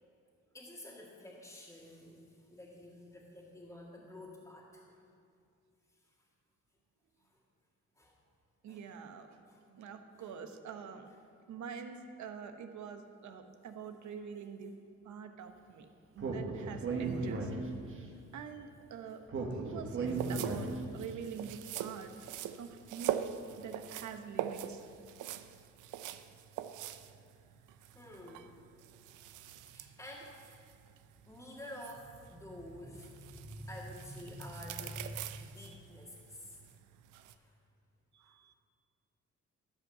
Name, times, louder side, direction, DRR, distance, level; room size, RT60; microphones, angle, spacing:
voice 1, 0.5-5.0 7.2-7.4 8.0-8.1 8.7-8.8 9.5-9.6 10.2-10.3 22.5-22.6 25.5-25.6 27.9-28.7 29.7-30.3 31.3-36.6 37.2-37.5, equal, 10° left, -5 dB, 1.9 m, -49 dB
voice 2, 8.6-9.4 9.7-11.1 11.5-14.8 15.0-15.9 16.1-17.5 18.3-19.2 19.5-22.1 22.6-23.2 23.6-24.9 38.1-38.5, right 6 dB, 70° right, 7 dB, 1.0 m, -46 dB
Speech, 16.2-18.0 19.3-21.0, right 3 dB, 45° right, 1.5 m, -36 dB
sound 1, 20.1-37.3, right 11 dB, 85° right, 0.6 m, -43 dB
13.0 x 5.4 x 6.8 m, 2.3 s
cardioid pair, 90°, 30 cm